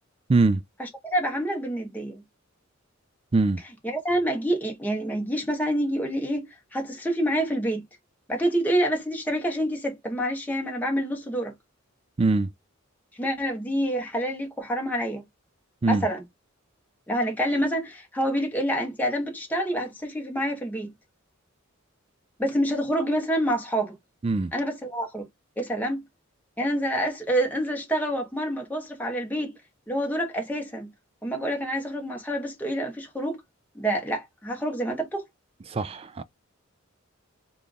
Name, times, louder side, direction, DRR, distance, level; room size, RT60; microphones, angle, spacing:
voice 1, 0.3-0.6 3.3-3.6 12.2-12.5 15.8-16.1 24.2-24.5 35.7-36.2, right 3 dB, 25° right, 0.3 m, -22 dB
voice 2, 0.8-2.2 3.8-7.8 8.3-11.5 13.2-15.2 15.9-16.2 17.1-20.9 22.4-23.9 24.5-25.2 25.6-26.0 26.6-29.6 29.9-30.9 31.2-33.4 33.7-35.2, equal, 10° left, 1.1 m, -27 dB
3.3 x 2.4 x 3.8 m
head